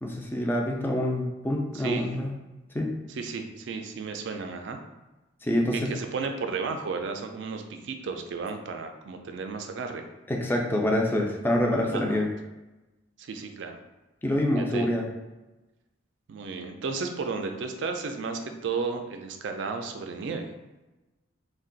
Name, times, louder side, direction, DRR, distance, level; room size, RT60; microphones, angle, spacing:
voice 1, 0.0-2.3 2.7-2.9 5.4-5.9 10.3-12.3 14.2-15.0, left 1 dB, 10° left, 0 dB, 0.3 m, -26 dB
voice 2, 1.7-2.1 3.1-4.8 5.7-10.1 11.9-12.2 13.2-13.8 14.6-14.9 16.3-20.5, right 4 dB, 65° right, 5 dB, 0.4 m, -33 dB
2.4 x 2.2 x 3.8 m, 1.1 s
head